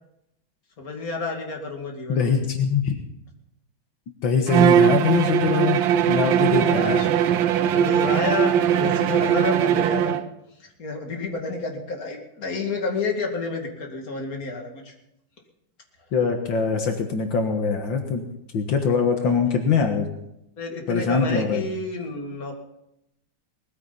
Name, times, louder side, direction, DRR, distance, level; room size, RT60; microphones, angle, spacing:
voice 1, 0.8-2.4 6.5-7.1 7.7-10.2 10.6-14.9 20.6-22.6, left 3 dB, 50° left, 1 dB, 2.7 m, -30 dB
voice 2, 2.1-3.0 4.2-5.8 6.1-7.0 16.1-18.3 18.5-20.1 20.9-21.6, left 5 dB, 80° left, 4 dB, 2.2 m, -23 dB
Bowed string instrument, 4.5-10.3, right 9 dB, 85° right, 1.5 m, -20 dB
20.5 x 14.5 x 4.1 m, 0.82 s
omnidirectional pair, 2.1 m